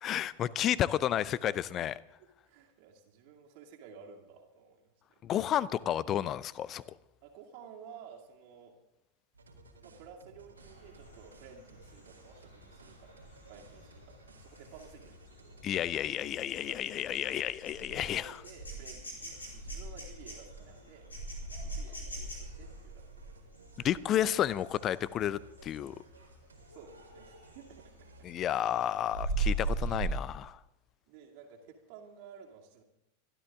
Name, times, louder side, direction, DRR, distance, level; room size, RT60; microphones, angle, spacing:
voice 1, 0.0-2.0 5.2-6.8 15.6-18.4 23.8-26.0 28.2-30.6, left 11 dB, 30° left, 20 dB, 0.5 m, -31 dB
voice 2, 2.2-5.2 7.2-8.7 9.8-13.1 13.5-15.6 16.3-17.2 17.9-21.1 21.6-23.0 23.3-23.5 26.7-27.9 31.1-32.8, right 6 dB, 45° right, 0 dB, 2.4 m, -53 dB
sound 1, 9.3-29.0, equal, 75° right, 2.3 m, -56 dB
sound 2, 10.6-25.1 25.5-25.8 26.2-27.8 28.2-30.2, right 3 dB, 80° left, 4.7 m, -40 dB
25.0 x 12.5 x 3.7 m, 0.87 s
figure-of-eight pair, 90°, 0 cm